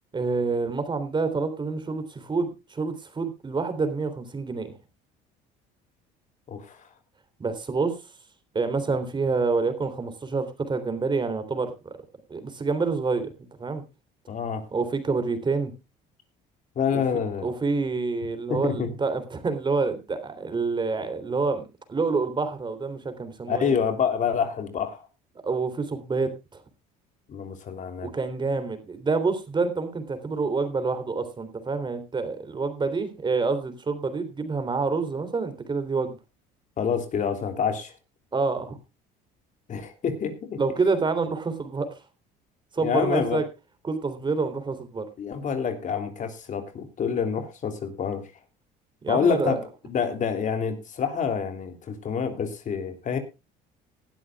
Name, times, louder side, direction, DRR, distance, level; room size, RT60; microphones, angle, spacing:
voice 1, 0.1-4.7 7.4-8.0 8.5-11.7 12.3-13.3 13.6-13.8 14.7-15.7 16.9-23.8 25.4-26.3 28.0-36.2 38.3-38.8 40.6-41.9 42.7-43.4 43.8-45.1 49.0-49.6, right 4 dB, 25° right, 10 dB, 3.4 m, -27 dB
voice 2, 6.5-6.9 14.3-14.7 16.7-17.5 18.5-18.9 23.5-25.1 27.3-28.1 36.8-37.9 39.7-40.6 42.8-43.4 45.2-48.3 49.1-53.2, left 6 dB, 45° left, 7 dB, 3.1 m, -27 dB
19.5 x 12.0 x 2.4 m, 0.27 s
cardioid pair, 105°, 18 cm